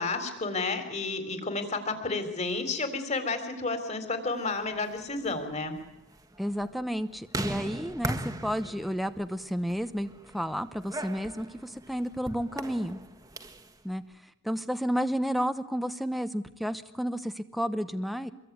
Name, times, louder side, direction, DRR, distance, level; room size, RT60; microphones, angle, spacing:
voice 1, 0.0-5.8, left 3 dB, 30° left, 8 dB, 4.0 m, -31 dB
sound 1, 4.6-13.7, right 1 dB, 15° right, 1.7 m, -39 dB
voice 2, 6.4-13.0 13.8-14.0 14.4-18.3, equal, ahead, 9 dB, 0.9 m, -31 dB
26.0 x 22.5 x 9.5 m, 0.89 s
head